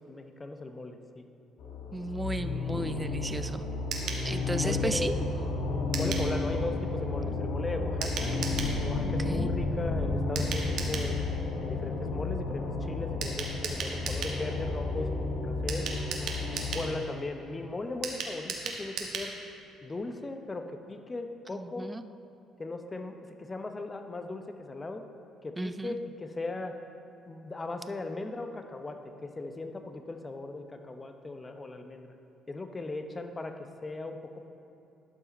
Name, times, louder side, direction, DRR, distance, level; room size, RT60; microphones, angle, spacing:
voice 1, 0.1-1.3 4.5-5.2 6.0-8.3 8.8-11.2 11.6-15.1 15.4-15.9 16.4-19.3 19.8-21.9 22.6-25.0 25.4-26.7 27.3-32.1 32.5-34.5, left 2 dB, 25° left, 6 dB, 0.8 m, -38 dB
sound 1, 1.6-16.9, left 3 dB, 75° left, 1.4 m, -32 dB
voice 2, 1.9-3.7 4.2-5.3 9.0-9.5 16.5-16.8 21.5-22.0 25.6-26.0, right 2 dB, 15° right, 10 dB, 0.5 m, -34 dB
sound 2, 3.3-14.9, right 3 dB, 50° right, 0.8 m, -50 dB
sound 3, 3.9-4.2 5.9-6.3 8.0-8.7 10.3-11.1 13.2-14.4 15.7-16.9 18.0-19.3 19.6-19.7 20.0-20.1, right 5 dB, 70° right, 1.1 m, -36 dB
12.0 x 5.6 x 4.1 m, 2.9 s
supercardioid pair, 70°, 0 cm